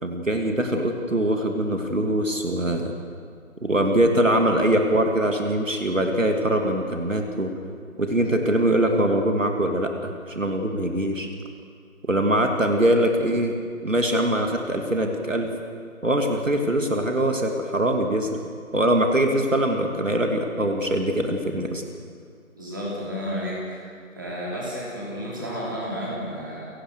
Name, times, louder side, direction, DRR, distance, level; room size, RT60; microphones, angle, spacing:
voice 1, 0.0-2.9 3.6-7.5 8.0-11.3 12.1-13.5 13.8-15.5 16.0-18.4 18.7-21.8, right 1 dB, 65° right, 3 dB, 2.8 m, -23 dB
voice 2, 22.5-23.9 24.1-26.7, equal, 15° right, -6 dB, 3.3 m, -31 dB
29.5 x 18.0 x 6.6 m, 2.2 s
figure-of-eight pair, 170°, 42 cm